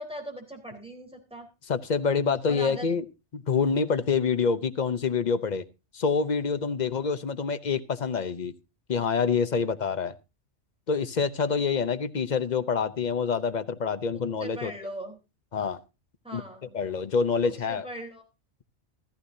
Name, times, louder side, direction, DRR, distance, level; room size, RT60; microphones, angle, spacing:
voice 1, 0.0-1.5 2.5-2.9 9.5-9.8 14.4-15.2 16.2-16.7 17.4-18.2, equal, 5° right, 1 dB, 3.7 m, -40 dB
voice 2, 1.7-3.0 3.3-5.6 5.9-8.5 8.9-10.1 10.9-14.7 15.5-15.8 16.3-16.4 16.7-17.8, left 5 dB, 45° left, 12 dB, 0.9 m, -26 dB
15.0 x 14.5 x 2.7 m, 0.28 s
omnidirectional pair, 1.1 m